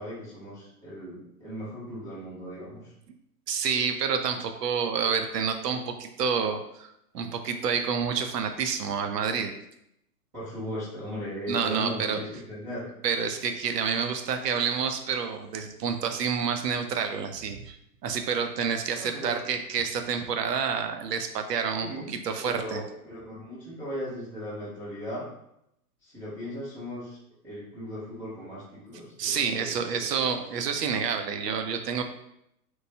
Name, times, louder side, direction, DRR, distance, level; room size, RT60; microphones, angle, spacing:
voice 1, 0.0-2.8 10.3-12.9 18.9-19.4 21.8-25.3 26.0-27.2 27.4-30.1, equal, 5° right, -17 dB, 0.4 m, -37 dB
voice 2, 3.5-9.5 11.5-12.2 13.0-17.8 18.0-22.8 29.2-32.0, right 6 dB, 90° right, 6 dB, 0.6 m, -28 dB
3.0 x 2.2 x 2.6 m, 0.78 s
hypercardioid pair, 135°, 47 cm